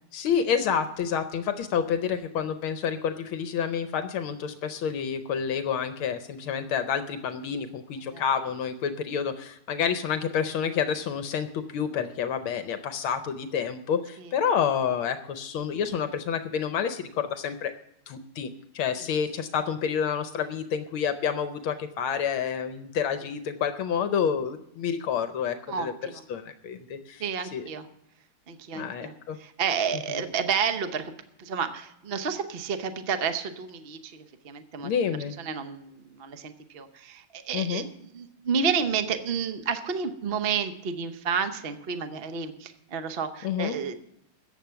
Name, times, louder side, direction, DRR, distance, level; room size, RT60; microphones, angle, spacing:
voice 1, 0.1-17.7 18.1-18.5 18.7-25.9 26.3-27.2 27.5-27.6 28.7-29.4 30.1-30.2 34.8-35.3 37.5-37.8 43.4-43.8, left 7 dB, 75° left, 9 dB, 1.6 m, -29 dB
voice 2, 25.7-26.2 27.2-27.9 28.5-34.9 35.4-37.8 38.1-43.9, right 6 dB, 60° right, 9 dB, 0.6 m, -31 dB
14.5 x 8.7 x 5.7 m, 0.80 s
omnidirectional pair, 2.4 m